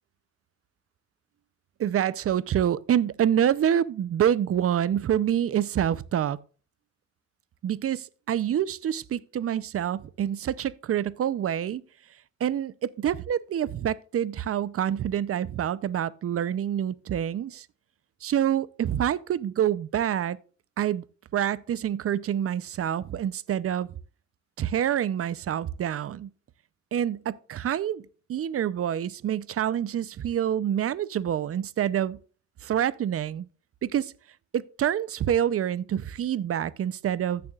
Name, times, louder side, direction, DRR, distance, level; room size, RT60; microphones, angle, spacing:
voice 1, 1.8-6.4 7.6-11.8 12.4-17.7 18.2-20.4 20.8-21.0 21.3-23.9 24.6-26.3 26.9-28.0 28.3-32.2 32.6-33.5 33.8-34.1 34.5-37.4, right 10 dB, 50° right, 0.7 m, -27 dB
15.5 x 7.0 x 2.4 m
cardioid pair, 90°, 30 cm